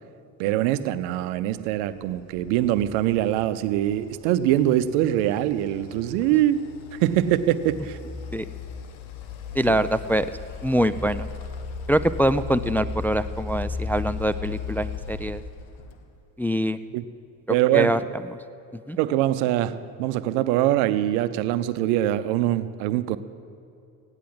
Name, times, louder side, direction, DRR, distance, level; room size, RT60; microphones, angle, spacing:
voice 1, 0.4-6.6 6.9-8.0 9.7-9.8 16.9-17.0 17.5-18.1 19.0-23.2, right 13 dB, 80° right, 14 dB, 0.8 m, -23 dB
sound 1, 1.7-16.2, left 5 dB, 65° left, 1.5 m, -36 dB
voice 2, 9.6-10.3 10.6-11.3 11.9-15.4 16.4-16.8 17.7-18.0 18.9-19.0, right 1 dB, 5° left, 12 dB, 0.4 m, -23 dB
16.5 x 10.0 x 7.8 m, 2.6 s
hypercardioid pair, 60°, 49 cm